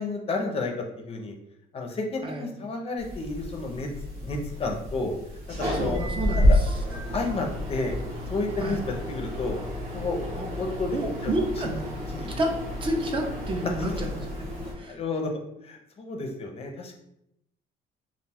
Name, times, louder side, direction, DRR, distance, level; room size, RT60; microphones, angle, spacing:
voice 1, 0.0-1.3 1.7-3.9 4.2-5.1 5.6-6.0 6.5-6.6 7.1-8.0 8.3-9.6 9.9-10.2 10.6-11.3 11.6-11.8 12.1-12.4 13.8-13.9 14.8-15.3 15.6-17.0, left 3 dB, 35° left, 2 dB, 0.5 m, -31 dB
sound 1, 3.0-14.7, left 1 dB, 90° right, 1.1 m, -30 dB
voice 2, 5.7-6.5 8.6-8.8 10.3-10.5 10.9-11.7 12.4-12.5 12.8-14.1 14.8-14.9, right 1 dB, 30° right, 2 dB, 0.5 m, -29 dB
2.4 x 2.2 x 3.3 m, 0.81 s
cardioid pair, 110°, 17 cm